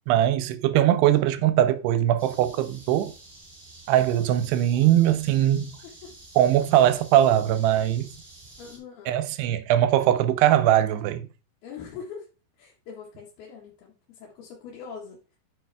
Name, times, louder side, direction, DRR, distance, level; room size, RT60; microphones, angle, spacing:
voice 1, 0.1-3.1 3.9-5.8 6.4-8.1 9.1-11.3, right 12 dB, 85° right, 2.6 m, -21 dB
sound 1, 2.2-8.8, right 2 dB, 40° right, 0.7 m, -49 dB
voice 2, 8.6-9.1 11.6-12.3 12.6-15.4, left 6 dB, 70° left, 3.4 m, -42 dB
8.7 x 5.5 x 3.4 m
omnidirectional pair, 4.8 m